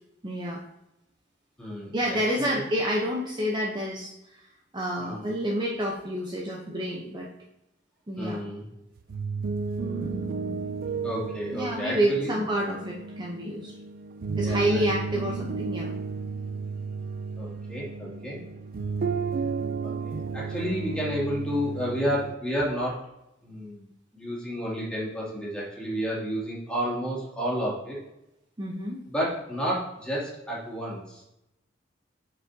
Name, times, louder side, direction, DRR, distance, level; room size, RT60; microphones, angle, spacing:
voice 1, 0.2-0.6 1.9-4.1 4.7-7.3 8.1-8.4 9.8-10.6 11.5-13.7 14.4-15.9 28.6-29.0, equal, 25° right, -1 dB, 0.7 m, -29 dB
voice 2, 1.6-2.6 5.0-5.3 8.2-8.6 11.0-12.4 14.4-14.8 17.4-18.4 19.8-23.0 23.4-23.9 24.1-28.0 29.1-31.2, equal, 5° left, -6 dB, 2.3 m, -31 dB
sound 1, 9.0-22.3, right 4 dB, 50° right, 0.4 m, -33 dB
7.4 x 5.8 x 2.7 m, 0.88 s
head